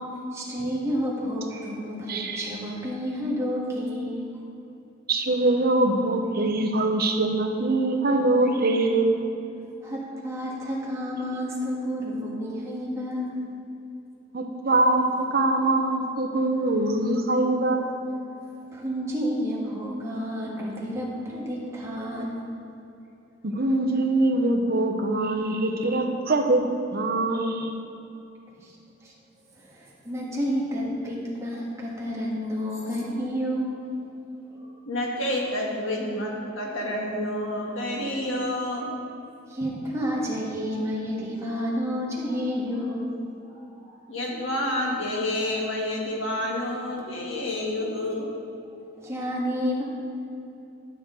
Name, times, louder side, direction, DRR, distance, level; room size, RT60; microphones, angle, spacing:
voice 1, 0.3-4.3 9.8-13.4 18.7-22.4 28.6-28.7 29.0-29.1 29.6-33.8 34.5-34.7 39.5-44.0 48.8-49.8, equal, 15° right, -5 dB, 1.7 m, -30 dB
voice 2, 2.1-2.4 5.1-9.2 14.3-15.0 15.3-18.0 23.4-26.6 26.9-27.7, right 2 dB, 50° right, 3 dB, 0.8 m, -23 dB
voice 3, 34.8-39.0 44.1-48.3, left 1 dB, 90° left, -1 dB, 1.7 m, -29 dB
12.0 x 6.4 x 3.9 m, 2.7 s
head